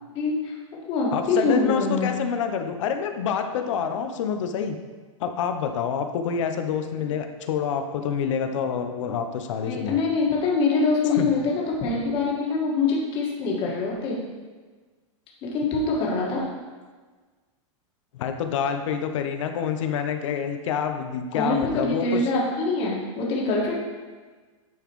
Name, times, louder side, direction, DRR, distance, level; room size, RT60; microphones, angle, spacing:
voice 1, 0.1-0.6 0.9-2.1 9.6-14.2 15.4-16.5 21.3-23.7, left 3 dB, 35° left, -3 dB, 1.8 m, -24 dB
voice 2, 1.1-4.8 5.2-10.0 11.1-11.3 18.1-22.2, left 7 dB, 70° left, 7 dB, 0.8 m, -27 dB
10.0 x 4.0 x 3.1 m, 1.4 s
supercardioid pair, 150°, 17 cm